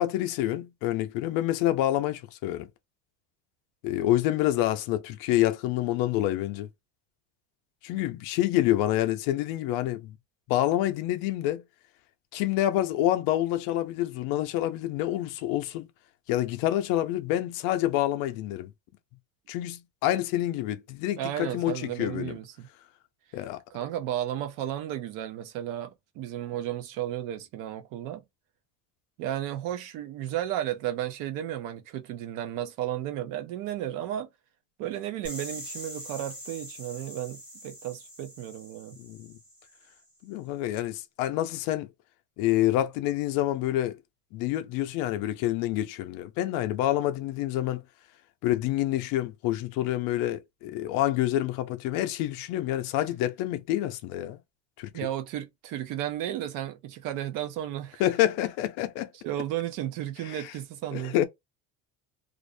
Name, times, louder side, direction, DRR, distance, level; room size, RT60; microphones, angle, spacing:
voice 1, 0.0-2.7 3.8-6.7 7.8-10.2 10.5-11.6 12.3-15.9 16.3-18.7 19.5-22.4 23.3-23.6 39.0-39.4 40.2-41.9 42.4-44.0 44.3-47.8 48.4-54.4 54.8-54.9 58.0-59.1 60.3-60.5 60.9-61.2, left 14 dB, 65° left, 0.5 m, -27 dB
voice 2, 21.2-22.7 23.7-28.2 29.2-34.3 34.8-39.0 54.9-58.0 59.2-61.2, right 12 dB, 60° right, 0.6 m, -33 dB
sound 1, 35.2-40.0, equal, 5° right, 0.8 m, -44 dB
2.5 x 2.0 x 2.5 m
cardioid pair, 155°, 36 cm